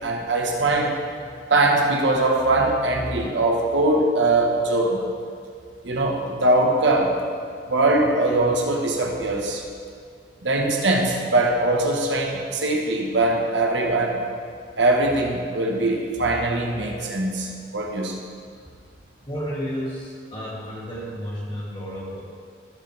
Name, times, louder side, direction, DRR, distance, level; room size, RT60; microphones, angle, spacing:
voice 1, 0.0-0.9 1.5-5.0 5.8-7.1 7.7-9.6 10.4-14.2 14.8-18.1, right 2 dB, 85° right, 1 dB, 1.3 m, -21 dB
voice 2, 19.3-22.2, equal, 30° left, -7 dB, 2.7 m, -32 dB
15.5 x 6.9 x 3.4 m, 2.1 s
head